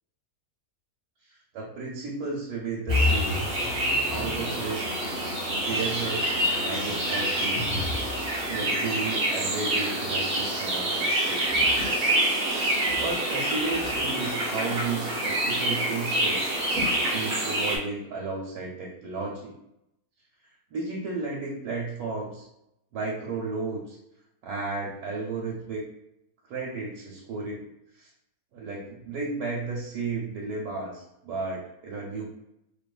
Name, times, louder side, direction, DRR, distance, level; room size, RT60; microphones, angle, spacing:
voice 1, 1.5-3.4 4.0-4.9 5.6-6.3 6.6-7.8 8.1-11.6 12.8-16.5 17.1-19.5 20.7-22.4 22.9-24.0 24.4-25.8 26.5-27.7 27.9-28.1 28.5-32.3, right 3 dB, 90° right, -4 dB, 1.1 m, -33 dB
sound 1, 2.9-8.8, left 3 dB, 25° left, 0.7 m, -33 dB
sound 2, 2.9-17.8, right 1 dB, 65° right, 0.5 m, -27 dB
2.6 x 2.3 x 2.2 m, 0.81 s
omnidirectional pair, 1.6 m